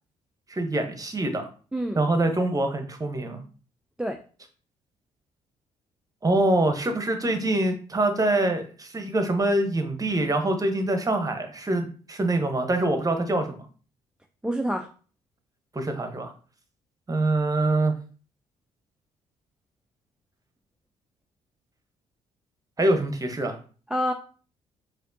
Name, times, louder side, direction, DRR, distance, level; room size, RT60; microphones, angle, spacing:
voice 1, 0.5-1.5 1.9-3.4 6.2-13.5 15.7-16.3 17.1-17.9 22.8-23.6, right 2 dB, 20° right, 6 dB, 0.8 m, -24 dB
voice 2, 14.4-14.9 23.9-24.1, equal, 5° right, 4 dB, 0.3 m, -27 dB
4.3 x 2.5 x 2.6 m, 0.39 s
hypercardioid pair, 45°, 16 cm